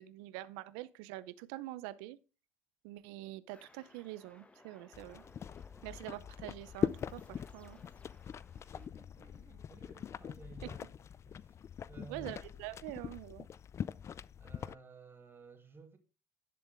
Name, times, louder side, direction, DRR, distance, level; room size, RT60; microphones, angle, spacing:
voice 1, 0.0-2.2 2.8-5.2 5.8-7.8 10.6-10.7 12.1-13.5, right 16 dB, 85° right, 0.6 m, -45 dB
sound 1, 3.5-8.9, left 2 dB, 15° left, 1.8 m, -62 dB
sound 2, 4.9-14.7, left 8 dB, 40° left, 0.5 m, -42 dB
voice 2, 8.5-11.0 11.3-11.6 11.9-12.4 14.4-16.0, right 4 dB, 30° right, 2.6 m, -55 dB
11.0 x 6.9 x 3.5 m
supercardioid pair, 75°, 7 cm